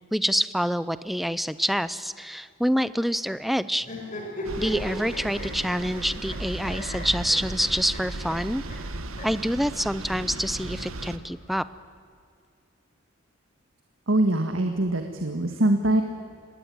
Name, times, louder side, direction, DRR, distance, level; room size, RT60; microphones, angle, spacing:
voice 1, 0.1-3.9 4.6-8.6 9.2-11.6, equal, ahead, 15 dB, 0.6 m, -26 dB
sound 1, 3.8-6.4 6.6-8.0 8.3-8.4 8.7-8.8 9.1-9.3 10.3-11.3, left 1 dB, 40° left, 5.1 m, -38 dB
sound 2, 4.4-11.2, right 2 dB, 85° right, 1.4 m, -36 dB
voice 2, 14.1-16.0, right 1 dB, 70° right, 5 dB, 1.7 m, -23 dB
26.0 x 20.0 x 9.5 m, 2.3 s
head